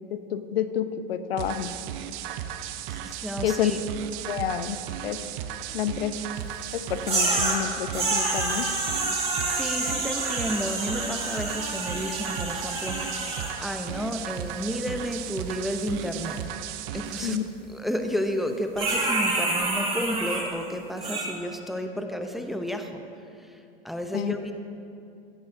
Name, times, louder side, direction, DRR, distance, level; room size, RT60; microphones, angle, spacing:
voice 1, 0.1-1.7 3.4-3.7 4.3-4.8 5.0-5.2 5.7-6.1 6.7-8.6 17.2-17.4 24.1-24.4, left 10 dB, 85° left, 11 dB, 0.7 m, -28 dB
sound 1, 1.4-17.4, right 10 dB, 55° right, 0.7 m, -36 dB
voice 2, 2.9-3.8 9.4-16.5 16.9-24.5, equal, ahead, 5 dB, 0.7 m, -32 dB
sound 2, 7.1-7.6 7.9-13.5 18.8-20.4 21.0-21.2, right 3 dB, 20° right, 2.8 m, -28 dB
16.0 x 11.5 x 2.7 m, 2.6 s
hypercardioid pair, 110°, 29 cm